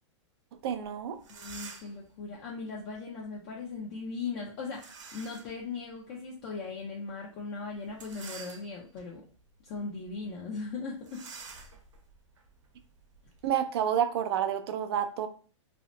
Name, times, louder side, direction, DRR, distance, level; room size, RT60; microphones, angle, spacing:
voice 1, 0.6-1.2 13.4-15.3, right 9 dB, 55° right, 8 dB, 0.4 m, -29 dB
sound 1, 0.8-0.9 1.2-2.0 4.7-5.6 6.1-6.2 7.9-9.0 9.6-9.8 10.0-10.2 11.0-13.5, right 5 dB, 80° right, 0.8 m, -48 dB
voice 2, 1.3-9.2 9.6-11.2, left 4 dB, 35° left, -2 dB, 0.5 m, -38 dB
2.7 x 2.0 x 3.0 m, 0.40 s
hypercardioid pair, 155°, 16 cm